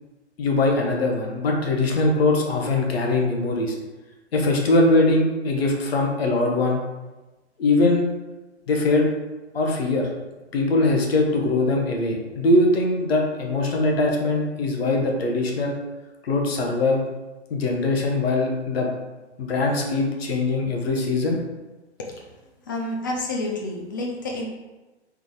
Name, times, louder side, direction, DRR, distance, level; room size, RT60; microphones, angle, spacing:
voice 1, 0.4-3.7 4.3-6.8 7.6-8.0 8.7-9.1 9.5-10.1 10.5-15.7 16.2-17.0 17.5-18.9 19.4-21.4, left 2 dB, 60° left, 1 dB, 1.0 m, -21 dB
voice 2, 22.7-24.5, left 2 dB, 20° left, -1 dB, 0.3 m, -29 dB
3.6 x 3.5 x 3.7 m, 1.1 s
figure-of-eight pair, 130°, 35 cm